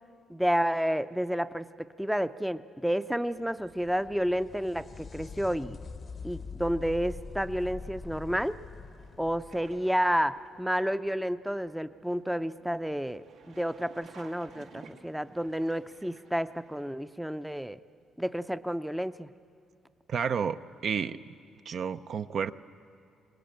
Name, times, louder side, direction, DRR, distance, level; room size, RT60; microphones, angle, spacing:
voice 1, 0.3-5.8 6.2-8.6 9.2-17.8 18.2-19.3, equal, 5° right, 13 dB, 0.5 m, -30 dB
sound 1, 3.4-11.0 14.3-14.4 15.5-15.6, left 5 dB, 45° left, 0.7 m, -44 dB
sound 2, 9.0-16.9, right 5 dB, 85° right, 2.0 m, -55 dB
voice 2, 20.1-21.2 21.7-22.5, right 6 dB, 60° right, 11 dB, 0.5 m, -31 dB
22.0 x 19.0 x 8.9 m, 2.4 s
cardioid pair, 90°, 0 cm